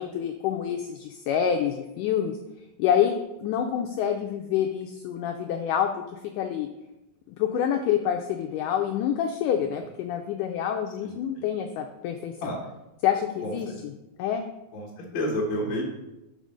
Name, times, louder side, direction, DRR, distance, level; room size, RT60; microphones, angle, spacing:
voice 1, 0.0-2.4 2.8-5.9 6.4-6.7 7.4-12.3 13.0-13.7 14.2-14.4, left 9 dB, 85° left, 5 dB, 1.8 m, -27 dB
voice 2, 11.0-11.4 12.4-12.6 13.4-13.7 14.7-15.8, left 1 dB, 60° left, -2 dB, 1.3 m, -30 dB
6.0 x 5.2 x 6.3 m, 0.96 s
omnidirectional pair, 4.1 m